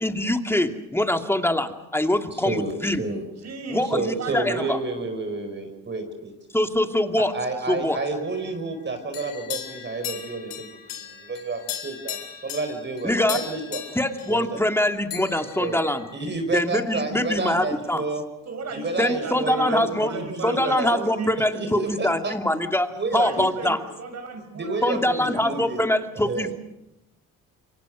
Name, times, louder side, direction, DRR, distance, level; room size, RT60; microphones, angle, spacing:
voice 1, 0.0-3.0 3.7-4.8 6.5-7.3 7.7-8.0 13.0-13.4 13.9-16.0 16.5-18.0 19.0-20.1 20.4-23.8 24.8-26.5, left 1 dB, 5° left, 5 dB, 2.4 m, -24 dB
voice 2, 2.3-3.2 3.8-6.3 7.2-10.8 11.1-13.8 14.3-14.6 15.6-15.8 16.1-18.2 18.7-21.0 21.5-22.3 22.9-23.5 24.5-25.8 26.3-26.5, right 3 dB, 35° right, 6 dB, 4.9 m, -30 dB
voice 3, 3.4-3.9 4.2-4.7 18.5-21.3 23.1-25.8, right 4 dB, 55° right, 7 dB, 7.3 m, -35 dB
sound 1, 7.9-8.8 9.1-14.9 15.1-16.6, left 10 dB, 85° left, 3.4 m, -38 dB
28.0 x 24.0 x 6.2 m, 0.92 s
cardioid pair, 90°, 33 cm